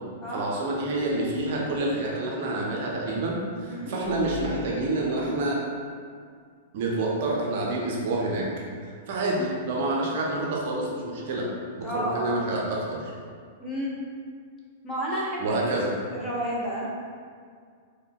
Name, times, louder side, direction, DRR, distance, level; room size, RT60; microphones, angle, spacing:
voice 1, 0.3-5.6 6.7-8.5 9.1-11.5 11.7-13.1 15.4-15.9, right 2 dB, 50° right, -3 dB, 0.5 m, -28 dB
sound 1, 1.0-1.8 3.9-5.4 7.1-7.5 7.8-8.2 8.5-8.7, left 3 dB, 75° left, 0.4 m, -40 dB
voice 2, 11.8-12.4 13.6-13.9 14.8-16.9, equal, 15° left, -5 dB, 0.8 m, -31 dB
4.8 x 2.2 x 2.2 m, 2.1 s
figure-of-eight pair, 100°, 0 cm